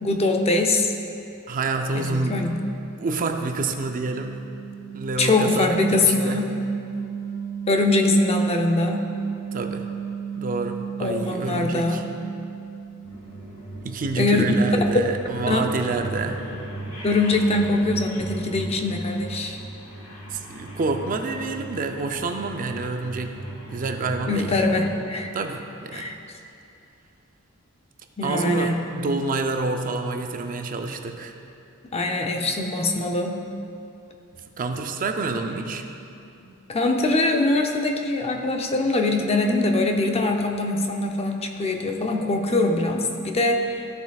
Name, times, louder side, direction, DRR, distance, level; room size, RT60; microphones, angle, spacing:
voice 1, 0.0-0.9 1.9-2.6 5.2-6.6 7.7-9.1 11.0-12.1 14.2-14.4 15.5-15.6 17.0-19.6 24.3-25.3 25.9-26.1 28.2-28.8 31.9-33.4 36.4-43.9, left 2 dB, 30° left, 3 dB, 0.6 m, -23 dB
voice 2, 1.5-2.5 3.0-4.4 4.9-6.4 9.5-9.9 10.4-12.0 13.8-16.6 20.3-24.6 25.3-26.1 28.2-31.3 34.6-35.8, right 3 dB, 40° right, 5 dB, 0.5 m, -28 dB
sound 1, 3.4-13.5, right 7 dB, 65° right, 1.2 m, -34 dB
sound 2, 13.0-24.9, right 1 dB, 85° left, 1.8 m, -37 dB
14.0 x 6.8 x 2.3 m, 2.6 s
head